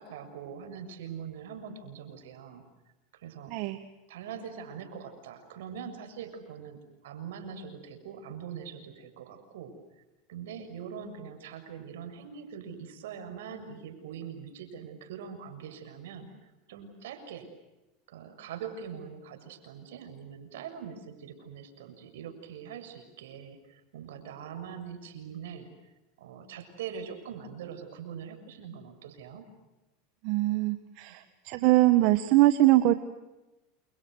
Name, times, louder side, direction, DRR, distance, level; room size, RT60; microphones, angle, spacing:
voice 1, 0.0-2.6 3.1-3.5 4.1-9.8 10.3-16.3 16.7-17.5 18.1-25.7 26.2-29.4 31.1-31.2, right 7 dB, 85° right, 8 dB, 6.8 m, -42 dB
voice 2, 3.5-3.8 30.2-32.9, right 16 dB, 60° right, 10 dB, 1.6 m, -23 dB
30.0 x 29.0 x 6.5 m, 1.0 s
supercardioid pair, 120°, 0 cm